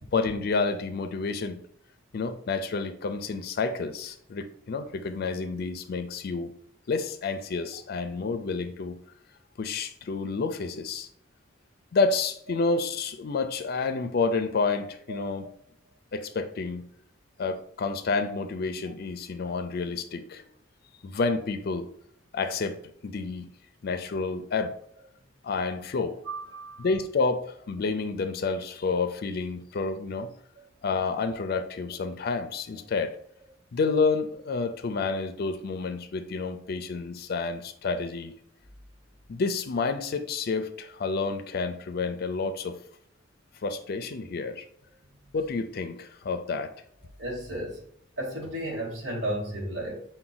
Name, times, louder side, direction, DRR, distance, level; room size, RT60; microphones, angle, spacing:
voice 1, 0.1-1.6 2.1-6.5 6.9-9.0 9.6-11.1 11.9-15.5 16.1-16.8 17.4-20.4 21.0-21.9 22.3-22.8 23.0-23.5 23.8-24.7 25.4-26.2 26.8-30.3 30.8-33.1 33.7-38.3 39.3-42.8 43.6-44.6 45.3-46.7, left 4 dB, 55° left, 9 dB, 0.4 m, -29 dB
voice 2, 26.2-26.9 47.2-47.8 48.2-50.0, right 1 dB, 70° right, -2 dB, 1.1 m, -33 dB
5.7 x 2.2 x 3.8 m, 0.66 s
head